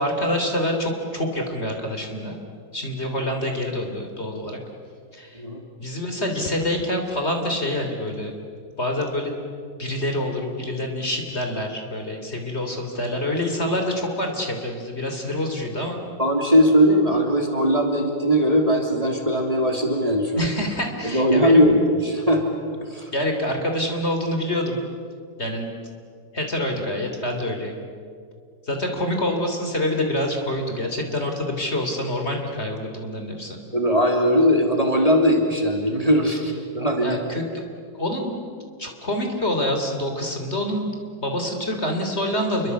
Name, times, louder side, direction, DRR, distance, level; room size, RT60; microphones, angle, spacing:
voice 1, 0.0-2.4 2.7-4.6 5.1-5.4 5.8-8.3 8.8-9.4 9.8-16.0 20.3-21.7 23.1-24.9 25.4-25.7 26.3-27.7 28.7-33.6 37.0-37.4 37.9-38.3 38.8-40.9 41.2-42.7, left 1 dB, 35° left, 3 dB, 3.5 m, -26 dB
voice 2, 16.2-20.5 21.0-22.4 22.8-23.1 33.7-37.2, equal, 20° right, 2 dB, 3.1 m, -19 dB
28.5 x 24.0 x 8.3 m, 2.2 s
omnidirectional pair, 2.0 m